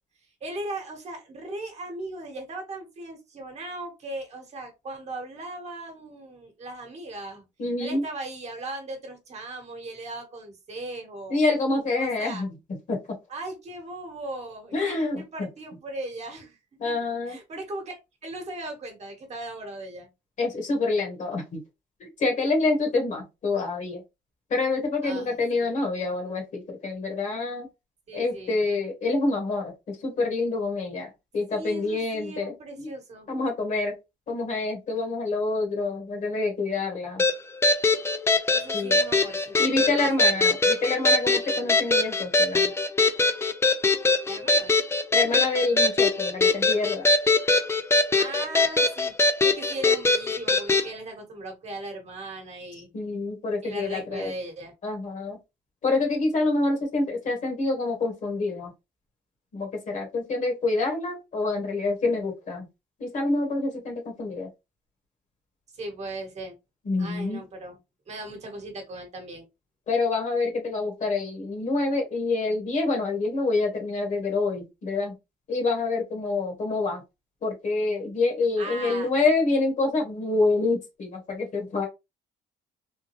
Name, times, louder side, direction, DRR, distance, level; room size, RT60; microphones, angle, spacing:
voice 1, 0.4-7.5 7.8-11.4 12.0-12.4 13.3-16.6 16.8-16.9 17.3-18.0 18.2-20.1 25.0-25.8 28.1-28.6 31.5-33.3 38.5-40.4 44.2-44.7 48.2-52.9 53.6-54.7 65.7-66.6 67.0-67.8 68.1-69.5 78.6-79.1, right 2 dB, 40° right, 3 dB, 1.3 m, -38 dB
voice 2, 7.6-8.0 11.3-12.5 12.9-13.0 14.7-15.5 16.8-17.4 20.4-21.6 22.0-24.0 24.5-27.7 28.1-32.9 33.3-33.9 34.3-37.2 38.7-39.0 39.6-42.7 45.1-47.1 52.9-54.3 54.8-55.4 55.8-58.7 59.5-62.7 63.0-64.5 66.8-67.4 69.9-75.1 75.5-77.0 77.4-81.9, left 3 dB, 45° left, 2 dB, 1.5 m, -27 dB
sound 1, 37.2-50.9, left 3 dB, 15° left, 0.4 m, -22 dB
3.6 x 2.3 x 3.0 m, 0.24 s
cardioid pair, 110°, 17 cm